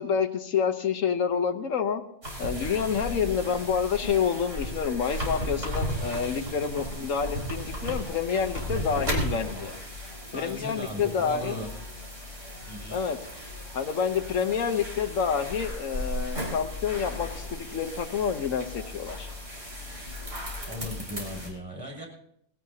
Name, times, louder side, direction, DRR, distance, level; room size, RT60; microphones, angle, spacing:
voice 1, 0.0-2.0 2.4-9.7 10.3-11.6 12.9-13.2 13.7-19.3, left 7 dB, 80° left, 6 dB, 1.3 m, -28 dB
sound 1, 2.2-21.5, equal, 65° right, 4.8 m, -35 dB
voice 2, 10.3-11.7 12.7-13.0 20.7-22.1, equal, 15° right, -1 dB, 6.5 m, -37 dB
20.5 x 17.5 x 2.8 m, 0.74 s
omnidirectional pair, 1.4 m